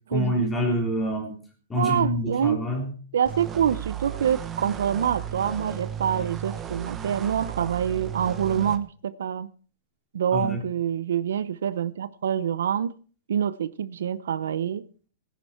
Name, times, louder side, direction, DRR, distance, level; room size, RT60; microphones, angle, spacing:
voice 1, 0.1-1.3 1.7-2.9 10.3-10.6, equal, 10° left, 1 dB, 3.4 m, -26 dB
voice 2, 1.8-2.6 3.1-9.5 10.1-12.9 13.3-14.8, right 8 dB, 85° right, 16 dB, 0.8 m, -26 dB
sound 1, 3.3-8.8, right 9 dB, 15° right, 1.1 m, -35 dB
18.0 x 10.5 x 4.4 m, 0.40 s
hypercardioid pair, 165°, 0 cm